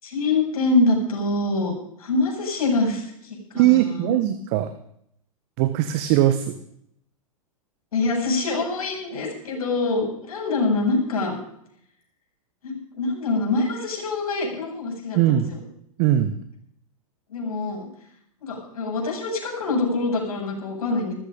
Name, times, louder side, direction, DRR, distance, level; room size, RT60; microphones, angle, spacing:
voice 1, 0.0-1.7 2.0-4.2 7.9-11.4 12.6-15.6 17.3-17.9 18.4-21.1, left 3 dB, 70° left, 0 dB, 7.7 m, -25 dB
voice 2, 3.5-4.7 5.6-6.6 15.1-15.5 16.0-16.4, right 13 dB, 45° right, 10 dB, 1.3 m, -20 dB
15.0 x 14.5 x 5.2 m, 0.71 s
hypercardioid pair, 110°, 19 cm